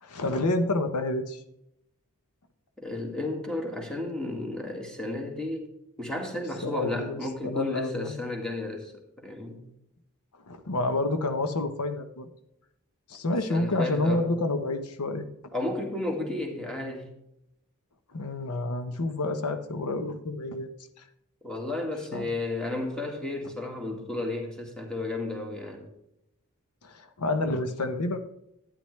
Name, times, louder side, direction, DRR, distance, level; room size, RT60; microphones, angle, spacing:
voice 1, 0.0-1.4 6.6-8.2 10.5-12.3 13.1-15.3 18.1-20.7 22.1-22.3 26.8-28.2, left 2 dB, 85° left, 8 dB, 0.9 m, -29 dB
voice 2, 2.8-5.7 6.0-8.9 9.2-9.6 13.5-14.3 15.5-17.1 21.4-25.9, left 2 dB, 5° left, 1 dB, 1.9 m, -33 dB
11.5 x 9.7 x 3.2 m, 0.82 s
head